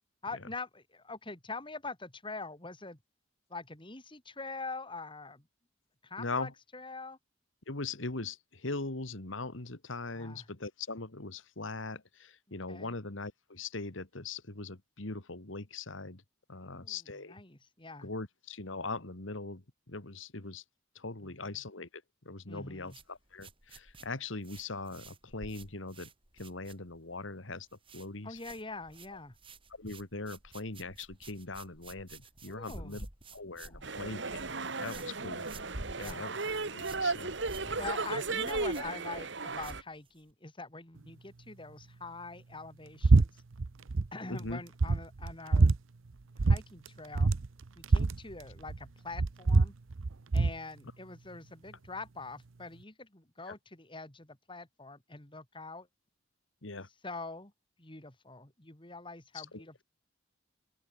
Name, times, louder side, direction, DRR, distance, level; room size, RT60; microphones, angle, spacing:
voice 1, 0.2-3.0 3.5-5.4 6.0-7.2 10.1-10.5 12.5-12.9 16.6-18.1 21.2-21.6 22.5-23.0 28.2-29.3 32.5-33.0 33.6-33.8 35.0-35.1 36.0-36.3 37.8-43.4 44.1-45.8 46.4-47.3 47.8-49.7 50.3-55.9 57.0-57.5 57.8-59.8, left 3 dB, 25° left, 2.8 m, -44 dB
voice 2, 6.2-6.5 7.7-16.2 16.5-17.4 18.0-20.6 21.0-21.9 22.3-26.1 26.4-27.7 27.9-28.4 29.8-33.1 33.3-35.4 36.0-36.4 36.7-37.3 37.7-38.2 44.3-44.6 53.4-53.5 56.6-56.9 59.3-59.8, left 3 dB, 75° left, 2.1 m, -41 dB
sound 1, 22.9-27.2 27.5-28.1 28.3-40.3, right 3 dB, 25° right, 3.8 m, -52 dB
sound 2, 33.8-39.8, right 3 dB, 65° right, 2.2 m, -35 dB
sound 3, 43.0-43.3 43.5-44.1 44.5-44.6 44.8-45.8 46.4-46.6 46.9-47.0 47.1-48.8 49.1-50.6, right 3 dB, 80° right, 0.7 m, -24 dB
open air
head